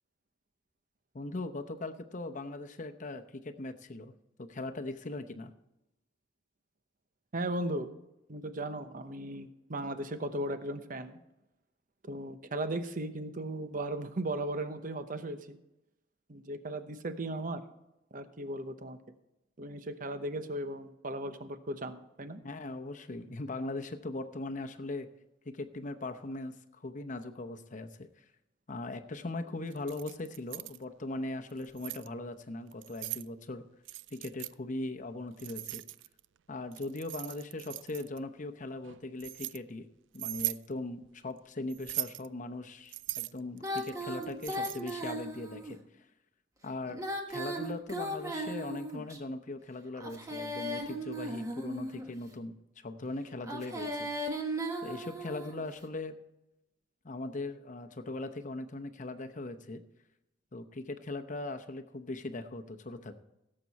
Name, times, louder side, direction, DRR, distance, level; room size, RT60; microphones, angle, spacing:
voice 1, 1.1-4.1 4.4-5.5 22.4-25.1 25.4-28.2 28.7-33.6 34.1-35.8 36.5-39.9 40.1-45.8 46.6-47.0 47.3-54.1 54.8-56.1 57.0-59.8 60.5-63.2, left 2 dB, 45° left, 7 dB, 0.9 m, -40 dB
voice 2, 7.3-7.9 8.3-11.2 12.0-15.6 16.3-17.6 18.1-19.0 19.6-22.4, right 1 dB, 45° right, 10 dB, 0.9 m, -37 dB
Keys jangling, 29.7-30.8 31.5-32.1 32.7-33.3 33.9-34.5 35.4-36.3 36.7-38.2 38.8-39.6 40.1-40.6 41.7-42.3 42.9-45.0, right 17 dB, 90° right, 0.3 m, -39 dB
Female singing, 43.6-45.7 46.9-49.2 50.0-52.1 53.4-55.6, right 1 dB, 20° right, 1.4 m, -37 dB
17.0 x 7.6 x 4.2 m, 0.90 s
head